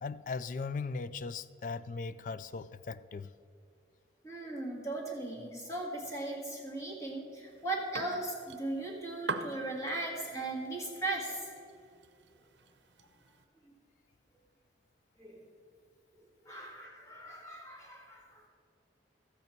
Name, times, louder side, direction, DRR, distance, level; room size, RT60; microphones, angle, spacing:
voice 1, 0.0-3.3, left 4 dB, 45° left, 15 dB, 0.3 m, -38 dB
voice 2, 4.2-11.5 15.2-15.5 16.5-18.5, right 2 dB, 15° left, -2 dB, 1.9 m, -38 dB
sound 1, 7.5-13.4, right 4 dB, 75° right, 0.7 m, -45 dB
13.5 x 8.4 x 4.5 m, 2.4 s
head